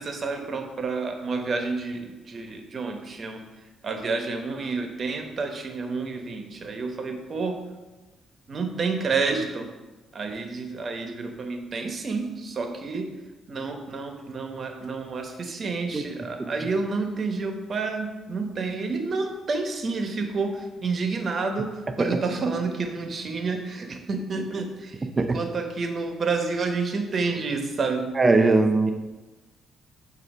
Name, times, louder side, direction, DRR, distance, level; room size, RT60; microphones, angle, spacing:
voice 1, 0.0-3.5 3.8-7.6 8.5-9.7 10.1-13.1 13.5-28.1 28.9-29.0, right 4 dB, 45° right, 4 dB, 1.0 m, -29 dB
voice 2, 28.2-28.9, right 3 dB, 25° right, 7 dB, 0.5 m, -19 dB
8.0 x 2.7 x 5.4 m, 1.1 s
cardioid pair, 90°, 0 cm